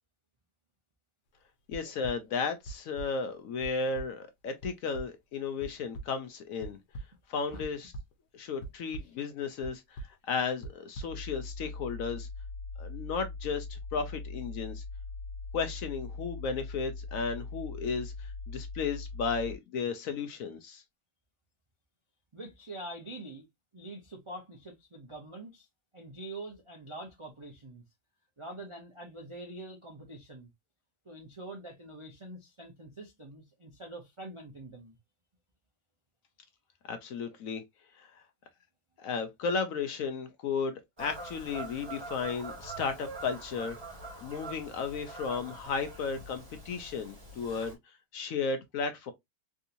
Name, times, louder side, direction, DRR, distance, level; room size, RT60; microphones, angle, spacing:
sound 1, 1.7-2.1 2.6-3.1 3.6-3.7 3.9-4.0 4.6-4.7 4.9-5.0 5.6-6.0 6.6-7.0 7.6-8.1 8.6-9.0 9.6-9.7 10.0-10.1 10.6-11.0, right 3 dB, 85° left, 1.4 m, -40 dB
voice 1, 1.7-6.8 7.3-7.9 8.3-12.3 12.8-14.8 15.5-20.8 36.9-37.6 38.0-38.1 39.0-43.8 44.2-47.8 48.1-49.1, left 5 dB, 70° left, 0.9 m, -34 dB
sound 2, 11.1-19.6, left 3 dB, 90° right, 1.2 m, -41 dB
voice 2, 22.3-23.5 23.7-25.7 25.9-27.8 28.4-30.5 31.0-35.0, right 2 dB, 45° right, 0.4 m, -45 dB
Fowl / Bird vocalization bird call bird song, 41.0-47.7, right 3 dB, 15° right, 1.4 m, -44 dB
3.6 x 2.8 x 2.5 m
omnidirectional pair, 1.7 m